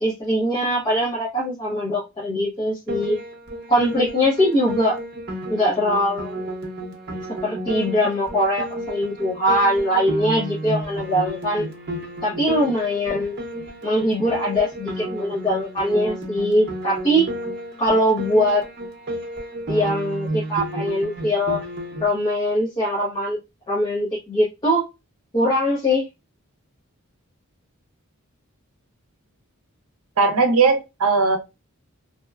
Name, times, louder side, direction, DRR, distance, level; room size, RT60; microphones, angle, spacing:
voice 1, 0.0-3.2 3.7-5.0 5.5-6.5 7.4-11.6 12.2-13.4 13.8-17.3 17.8-18.6 19.7-21.6 22.0-23.4 23.7-24.8 25.3-26.0, equal, 20° left, 0.7 m, -21 dB
Piano, 2.9-22.1, right 1 dB, 50° right, 0.8 m, -32 dB
voice 2, 30.2-31.4, right 4 dB, 80° right, 0.6 m, -18 dB
2.8 x 2.1 x 2.2 m
head